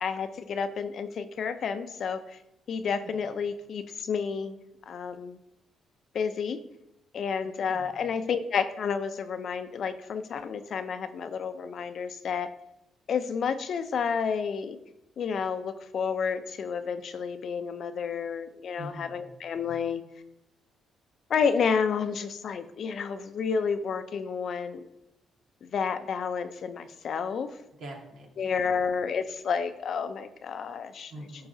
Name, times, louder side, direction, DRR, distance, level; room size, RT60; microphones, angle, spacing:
voice 1, 0.0-2.4 2.7-4.6 4.9-5.4 6.1-6.6 7.1-12.5 13.1-14.8 15.2-20.0 21.3-24.9 25.6-27.6 28.4-31.1, left 6 dB, 60° left, 10 dB, 0.5 m, -30 dB
voice 2, 7.5-8.0 18.8-19.4 27.8-28.7 31.1-31.5, right 1 dB, 75° right, 0 dB, 1.8 m, -44 dB
11.5 x 4.7 x 2.7 m, 0.86 s
cardioid pair, 90°, 0 cm